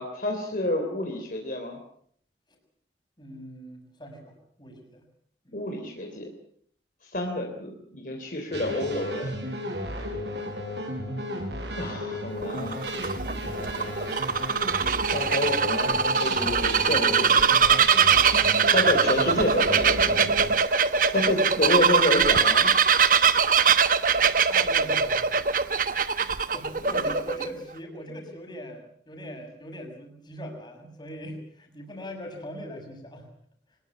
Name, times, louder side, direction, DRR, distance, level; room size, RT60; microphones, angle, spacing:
voice 1, 0.0-1.8 5.5-6.3 7.0-9.3 11.7-12.8 13.6-14.0 15.0-17.4 18.2-20.3 21.1-22.7 26.8-27.0, left 1 dB, 50° left, 2 dB, 3.4 m, -29 dB
voice 2, 3.2-4.3 4.6-5.0 5.4-5.6 8.7-8.8 10.2-10.3 21.1-21.2 24.4-25.6 26.5-33.3, equal, 25° left, 3 dB, 6.3 m, -40 dB
sound 1, 8.5-20.6, equal, 75° right, 7.7 m, -34 dB
Bird vocalization bird call bird song, 12.4-27.5, right 6 dB, 50° right, 1.0 m, -22 dB
24.5 x 20.5 x 7.2 m, 0.63 s
head